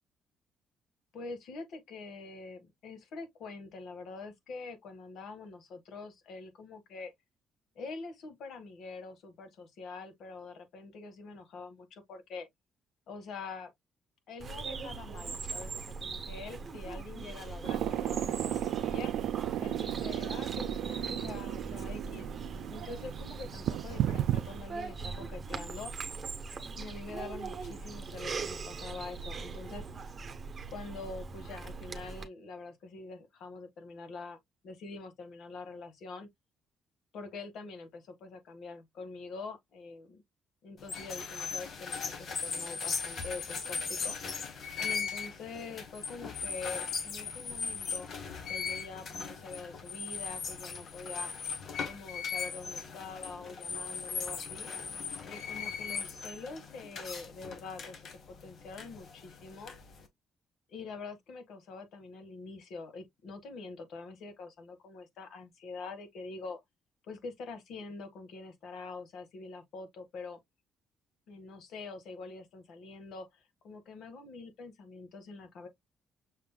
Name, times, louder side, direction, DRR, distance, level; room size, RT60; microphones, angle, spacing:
voice 1, 1.1-7.1 7.7-12.5 13.1-13.7 14.3-19.1 19.6-22.3 22.7-25.9 26.8-29.8 30.7-34.4 34.6-36.3 37.1-40.2 40.6-44.2 44.8-48.1 48.5-51.3 51.8-54.7 55.2-58.0 58.3-59.7 60.7-66.6 67.0-70.4 71.3-75.7, left 4 dB, 70° left, 1.6 m, -45 dB
Bird vocalization bird call bird song, 14.4-32.2, right 4 dB, 35° right, 1.0 m, -41 dB
sound 1, 17.6-24.6, right 12 dB, 80° right, 0.3 m, -34 dB
sound 2, 40.8-60.1, left 5 dB, 50° left, 1.3 m, -38 dB
6.4 x 3.6 x 2.2 m
cardioid pair, 120°, 0 cm